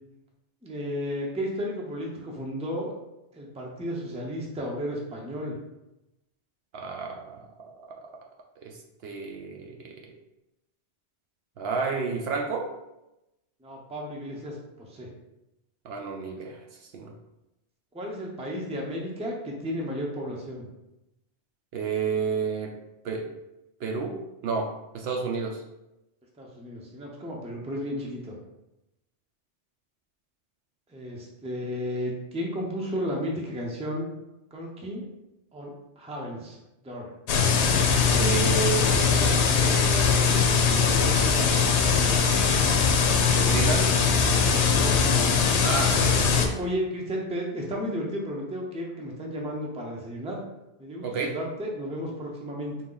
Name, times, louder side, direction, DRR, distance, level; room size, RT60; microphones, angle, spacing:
voice 1, 0.6-2.9 3.3-5.6 13.6-15.1 17.9-20.7 26.4-28.4 30.9-34.1 34.5-35.1 35.5-36.6 36.8-37.1 44.6-45.2 45.9-50.4 50.8-52.8, equal, 5° right, -1 dB, 0.5 m, -33 dB
voice 2, 6.7-7.7 8.6-10.1 11.6-12.7 15.8-16.6 16.9-17.1 21.7-22.7 23.0-23.3 23.8-24.2 24.4-25.6 38.1-40.6 41.0-41.7 43.3-43.9 45.6-46.0 51.0-51.3, right 5 dB, 65° right, 1 dB, 0.7 m, -31 dB
sound 1, 37.3-46.5, left 5 dB, 75° left, 0.8 m, -21 dB
3.8 x 2.8 x 3.8 m, 0.92 s
omnidirectional pair, 1.2 m